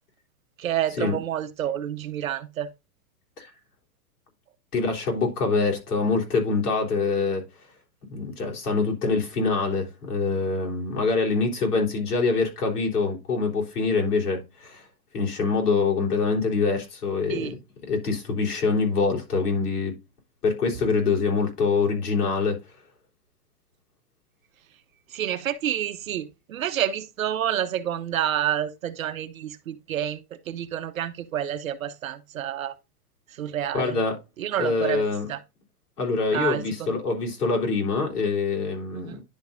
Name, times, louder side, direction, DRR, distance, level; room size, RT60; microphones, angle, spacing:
voice 1, 0.6-2.7 17.3-17.5 25.1-32.7 33.4-34.0 34.4-35.0 35.3-35.4 36.3-36.9 38.9-39.2, right 10 dB, 60° right, 0.9 m, -29 dB
voice 2, 4.7-7.4 8.1-14.9 15.1-17.6 17.9-20.0 20.4-22.6 33.7-34.2 34.6-35.3 36.0-39.2, left 4 dB, 75° left, 3.7 m, -25 dB
10.5 x 5.2 x 2.5 m
hypercardioid pair, 175°, 46 cm